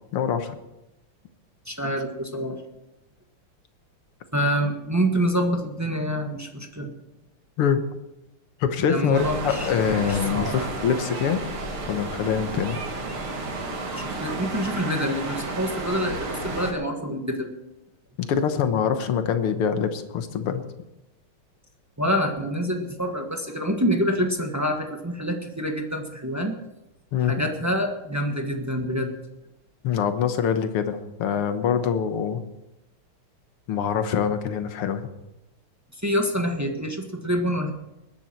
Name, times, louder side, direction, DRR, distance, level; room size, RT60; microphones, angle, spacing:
voice 1, 0.1-0.6 7.6-7.8 8.6-9.2 9.4-11.4 11.9-12.8 18.2-20.6 27.1-27.4 29.8-32.4 33.7-35.0, left 7 dB, 90° left, 8 dB, 2.1 m, -24 dB
voice 2, 1.6-2.6 4.3-6.9 8.9-9.7 10.0-10.6 14.0-17.5 22.0-26.6 27.2-29.1 36.0-37.7, equal, 10° right, 3 dB, 1.0 m, -26 dB
sound 1, 9.1-16.7, right 2 dB, 75° right, 2.8 m, -32 dB
20.5 x 10.5 x 4.5 m, 0.94 s
omnidirectional pair, 2.4 m